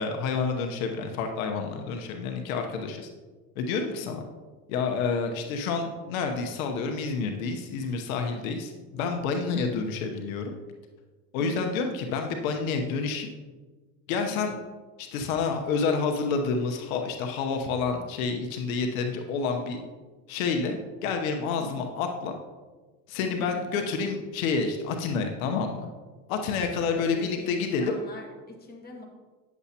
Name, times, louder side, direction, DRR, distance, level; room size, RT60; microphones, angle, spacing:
voice 1, 0.0-3.1 3.6-4.2 4.7-10.5 11.3-13.3 14.1-14.5 15.0-19.8 20.3-22.3 23.1-25.9 26.3-27.9, left 5 dB, 90° left, 4 dB, 1.0 m, -29 dB
voice 2, 3.8-4.2 11.4-11.7 14.3-14.5 21.5-21.9 23.2-23.7 26.4-29.1, left 2 dB, 25° left, 0 dB, 1.8 m, -44 dB
9.5 x 7.2 x 2.9 m, 1.3 s
supercardioid pair, 105°, 40 cm